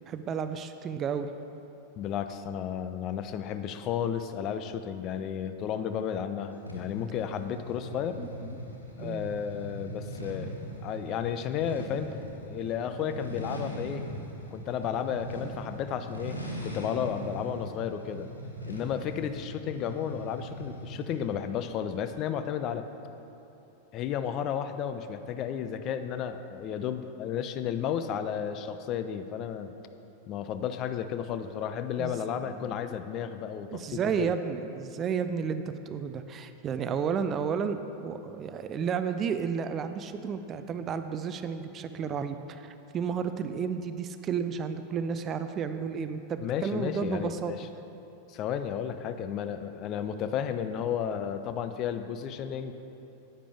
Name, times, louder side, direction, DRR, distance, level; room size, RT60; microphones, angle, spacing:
voice 1, 0.1-1.3 8.2-8.6 9.0-9.3 32.0-32.1 32.5-32.9 33.7-47.5, right 6 dB, 30° right, 10 dB, 0.4 m, -32 dB
voice 2, 2.0-8.2 9.0-12.1 12.5-14.1 14.5-18.3 18.7-22.8 23.9-29.7 30.3-34.3 46.4-47.7 48.3-52.7, left 8 dB, 35° left, 9 dB, 0.4 m, -33 dB
sound 1, 6.7-21.3, equal, 85° left, 1.1 m, -40 dB
9.8 x 8.7 x 3.4 m, 2.9 s
figure-of-eight pair, 90°, 0 cm